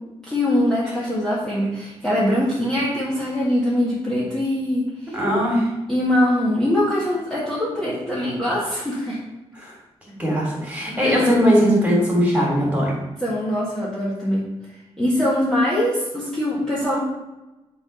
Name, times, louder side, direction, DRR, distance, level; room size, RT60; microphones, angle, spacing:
voice 1, 0.2-5.2 5.9-9.2 11.0-11.3 13.2-17.0, left 1 dB, 5° left, -8 dB, 1.7 m, -23 dB
voice 2, 5.1-5.7 9.6-9.7 10.2-12.9, equal, 10° right, -4 dB, 3.3 m, -19 dB
10.5 x 4.0 x 5.6 m, 1.0 s
wide cardioid pair, 175°, 11 cm